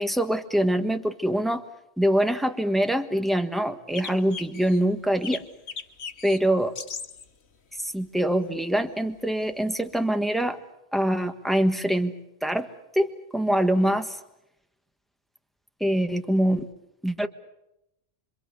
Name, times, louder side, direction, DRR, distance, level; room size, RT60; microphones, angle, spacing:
voice 1, 0.0-1.6 2.0-5.4 6.2-6.7 7.8-10.6 10.9-12.1 12.4-12.7 12.9-14.2 15.8-16.7 17.0-17.3, right 1 dB, ahead, 7 dB, 1.4 m, -24 dB
sound 1, 4.0-4.8 5.2-6.4 6.8-7.2 8.6-8.7 10.0-10.1, left 5 dB, 80° left, 1.5 m, -37 dB
26.5 x 25.0 x 7.0 m, 0.86 s
omnidirectional pair, 1.1 m